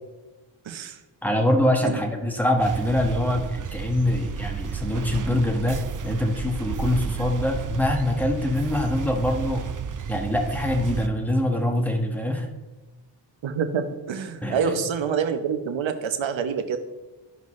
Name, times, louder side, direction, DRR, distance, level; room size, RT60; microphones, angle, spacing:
voice 1, 0.6-1.0 1.8-2.0 13.4-16.8, right 6 dB, 85° right, 8 dB, 1.0 m, -27 dB
voice 2, 1.2-9.7 10.1-12.5 14.4-14.8, left 1 dB, 5° left, 2 dB, 1.5 m, -24 dB
sound 1, 2.6-11.1, right 6 dB, 45° right, 0.6 m, -32 dB
13.5 x 5.3 x 3.2 m, 1.1 s
cardioid pair, 70°, 45 cm